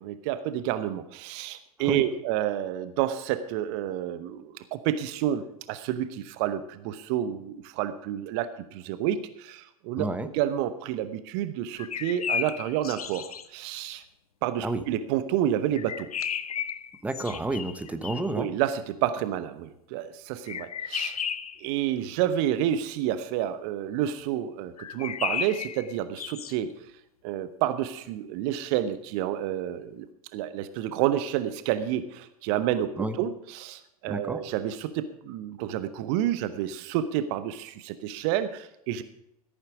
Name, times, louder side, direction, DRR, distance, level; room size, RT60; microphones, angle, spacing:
voice 1, 0.0-14.0 14.4-16.1 18.3-21.2 21.6-26.7 27.2-30.1 30.3-39.0, right 11 dB, 50° right, 13 dB, 0.9 m, -29 dB
voice 2, 10.0-10.3 14.6-14.8 17.0-18.5 33.0-33.2 34.1-34.4, right 2 dB, 5° right, 10 dB, 1.1 m, -30 dB
sound 1, 11.8-13.5 15.7-18.4 20.5-21.7 24.8-26.6, left 8 dB, 75° left, 0.7 m, -34 dB
15.0 x 9.0 x 4.9 m, 0.81 s
figure-of-eight pair, 90°, 19 cm